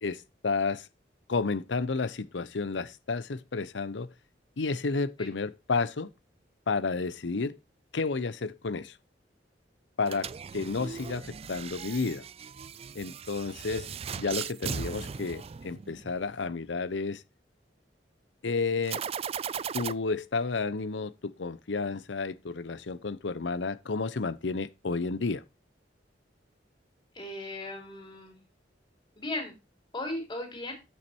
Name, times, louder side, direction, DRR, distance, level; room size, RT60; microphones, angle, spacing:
voice 1, 0.0-0.9 1.3-4.1 4.6-6.1 6.7-7.6 7.9-9.0 10.0-12.2 12.9-13.9 14.2-17.2 18.4-19.0 19.7-25.4, left 4 dB, 90° left, 0.7 m, -31 dB
sound 1, 10.0-16.2 18.8-19.9, right 7 dB, 35° right, 0.4 m, -38 dB
voice 2, 27.1-28.4 29.2-29.5 29.9-30.7, left 1 dB, 25° left, 3.9 m, -37 dB
8.4 x 6.5 x 4.4 m
head